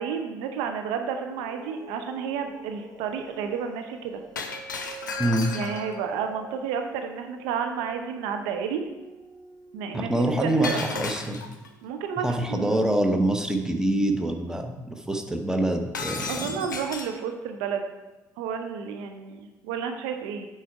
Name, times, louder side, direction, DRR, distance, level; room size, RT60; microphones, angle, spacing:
voice 1, 0.0-4.2 5.5-8.8 9.7-10.1 10.4-11.0 11.8-12.9 16.3-17.9 18.4-20.5, right 7 dB, 65° right, 6 dB, 0.6 m, -31 dB
sound 1, 1.0-13.8, right 4 dB, 45° right, 2.4 m, -48 dB
Shatter, 4.4-6.0 10.6-11.7 15.9-17.2, left 4 dB, 85° left, 0.5 m, -34 dB
voice 2, 5.2-5.5 9.9-11.4 12.2-16.6, right 1 dB, 5° right, 4 dB, 1.0 m, -25 dB
8.5 x 4.7 x 4.5 m, 1.1 s
figure-of-eight pair, 50°, 10 cm